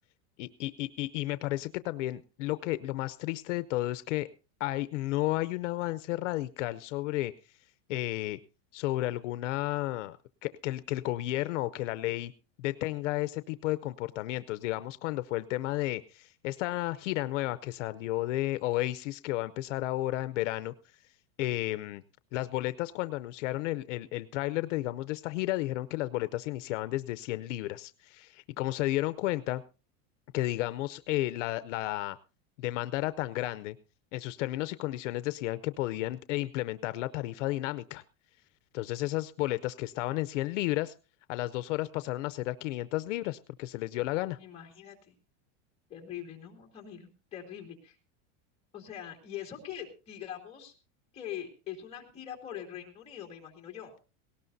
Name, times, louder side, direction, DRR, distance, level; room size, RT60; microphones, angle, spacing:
voice 1, 0.4-4.3 4.6-7.3 7.9-8.4 8.7-12.3 12.6-20.7 21.4-22.0 22.3-29.6 30.3-32.2 32.6-33.8 34.1-38.0 38.7-40.9 41.3-44.4, left 17 dB, 70° left, 14 dB, 0.7 m, -32 dB
voice 2, 44.4-45.1 45.9-48.0 48.7-50.7 51.1-53.9, left 10 dB, 15° left, 1 dB, 2.5 m, -43 dB
18.5 x 18.0 x 2.7 m, 0.32 s
supercardioid pair, 180°, 38 cm